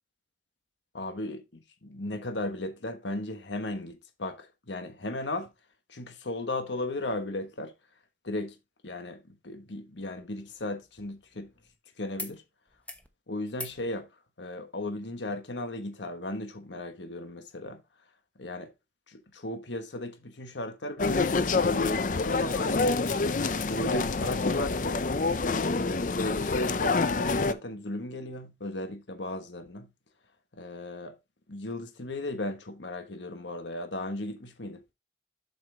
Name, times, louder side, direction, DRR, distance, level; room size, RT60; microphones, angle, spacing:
voice 1, 0.9-5.5 5.9-7.7 8.2-8.6 8.8-11.5 12.0-12.4 13.3-14.1 14.4-17.8 18.4-18.7 19.1-22.9 23.7-25.0 25.5-29.9 30.5-31.2 31.5-34.8, left 1 dB, 85° left, 1.3 m, -36 dB
sound 1, 10.0-11.8 12.2-12.4 12.7-13.1 13.5-13.8 15.2-15.3, left 2 dB, 10° left, 1.0 m, -44 dB
sound 2, 21.0-27.5, left 3 dB, 45° left, 0.6 m, -27 dB
7.6 x 5.8 x 3.9 m
head